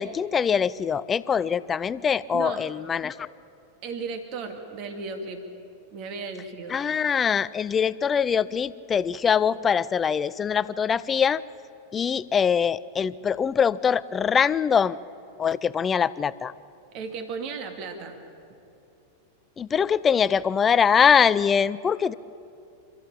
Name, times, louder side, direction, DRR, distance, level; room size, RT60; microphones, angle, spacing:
voice 1, 0.0-3.3 6.7-11.4 11.9-15.0 15.4-16.5 19.6-22.1, left 7 dB, 20° left, 18 dB, 0.5 m, -23 dB
voice 2, 3.8-5.4 5.9-6.8 16.9-18.2, right 4 dB, 40° right, 7 dB, 2.3 m, -35 dB
29.0 x 14.0 x 8.7 m, 2.7 s
figure-of-eight pair, 90°, 0 cm